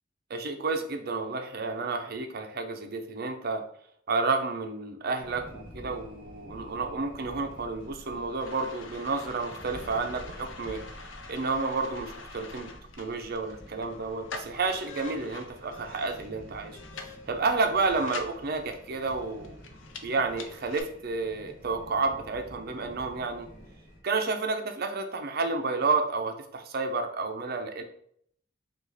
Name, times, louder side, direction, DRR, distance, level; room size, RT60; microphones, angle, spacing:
voice 1, 0.3-3.6 4.1-10.8 11.3-12.7 13.0-16.8 17.3-19.6 20.0-23.5 24.0-27.8, right 3 dB, 55° right, 5 dB, 0.6 m, -30 dB
sound 1, 5.2-24.0, equal, 45° left, 1.4 m, -49 dB
sound 2, 7.8-20.8, left 3 dB, 80° left, 0.6 m, -46 dB
4.8 x 2.5 x 4.0 m, 0.66 s
head